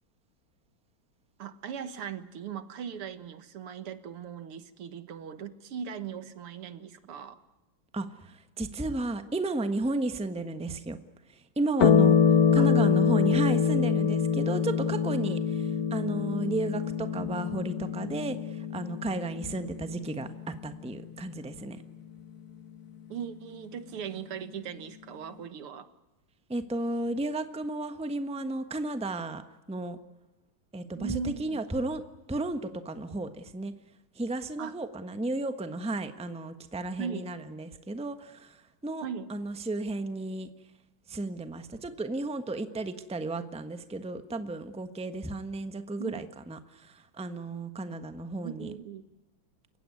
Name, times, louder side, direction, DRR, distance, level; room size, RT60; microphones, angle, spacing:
voice 1, 1.4-7.4 12.6-12.7 23.1-25.9 30.9-31.6 34.6-34.8 37.0-37.3 39.0-39.3 46.0-46.3 48.4-49.0, right 7 dB, 90° right, 11 dB, 2.4 m, -39 dB
voice 2, 7.9-11.0 11.6-21.8 26.5-29.4 29.7-30.0 30.7-32.0 32.3-33.7 34.2-38.6 38.8-40.5 41.1-48.7, right 2 dB, 5° right, 9 dB, 0.9 m, -33 dB
sound 1, 11.8-20.7, left 7 dB, 50° left, 1.5 m, -25 dB
29.5 x 16.5 x 9.7 m, 1.0 s
omnidirectional pair, 2.4 m